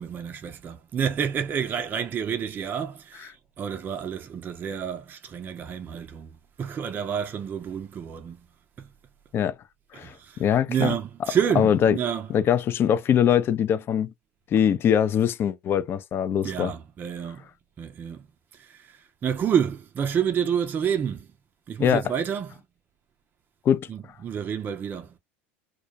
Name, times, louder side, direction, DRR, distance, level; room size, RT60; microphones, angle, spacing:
voice 1, 0.0-8.5 8.8-8.9 9.9-12.3 16.4-17.4 17.8-18.3 18.5-21.3 21.7-22.5 23.9-25.2, right 8 dB, 30° right, 0.4 m, -29 dB
voice 2, 10.4-11.0 11.6-12.0 12.3-14.1 14.5-16.7 21.8-22.0 23.7-23.9, left 9 dB, 40° left, 0.4 m, -22 dB
2.2 x 2.1 x 2.6 m
hypercardioid pair, 90°, 6 cm